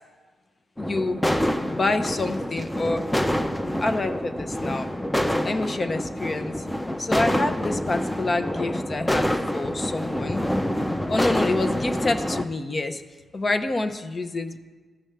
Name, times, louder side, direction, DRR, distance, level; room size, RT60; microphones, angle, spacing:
voice 1, 0.8-1.2 1.6-3.0 3.8-4.9 5.4-6.5 7.0-10.5 11.1-13.0 13.3-14.6, left 2 dB, 40° left, 8 dB, 0.8 m, -27 dB
sound 1, 0.8-12.4, equal, 10° left, 0.6 m, -27 dB
15.0 x 6.2 x 3.4 m, 1.4 s
cardioid pair, 60°, 0 cm